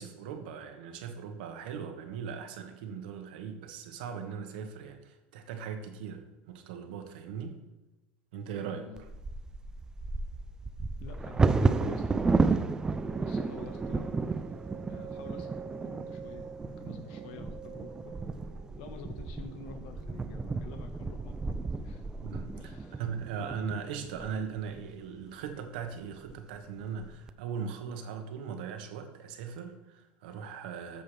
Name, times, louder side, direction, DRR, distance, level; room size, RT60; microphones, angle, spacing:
voice 1, 0.0-7.6 8.3-8.9 13.6-13.7 22.2-31.0, right 6 dB, 85° right, 6 dB, 1.4 m, -39 dB
voice 2, 8.6-9.0 10.9-12.4 13.2-14.1 14.9-18.1 18.7-21.6 21.8-22.0 22.5-23.0, left 5 dB, 75° left, 6 dB, 1.4 m, -48 dB
Bird vocalization bird call bird song / Wind / Thunder, 9.0-24.8 25.5-25.6 25.9-26.3 26.8-27.3, right 3 dB, 15° right, 0.4 m, -32 dB
sound 1, 11.2-24.0, right 8 dB, 45° right, 0.9 m, -50 dB
13.5 x 7.1 x 3.4 m, 1.0 s
supercardioid pair, 135°, 5 cm